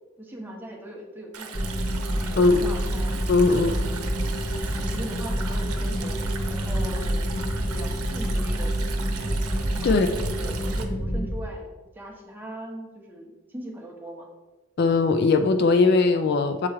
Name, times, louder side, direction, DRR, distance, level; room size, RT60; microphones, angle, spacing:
voice 1, 0.2-1.7 2.1-3.2 3.9-4.1 4.8-6.2 6.5-8.7 9.9-14.3, right 1 dB, 10° right, -2 dB, 0.9 m, -39 dB
Stream, 1.3-10.8, right 6 dB, 85° right, 0.8 m, -39 dB
sound 1, 1.5-11.3, equal, 30° left, 0.8 m, -27 dB
voice 2, 2.4-2.7 3.3-3.8 9.8-10.1 14.8-16.7, left 3 dB, 50° left, 8 dB, 0.3 m, -20 dB
7.4 x 3.1 x 4.6 m, 1.3 s
head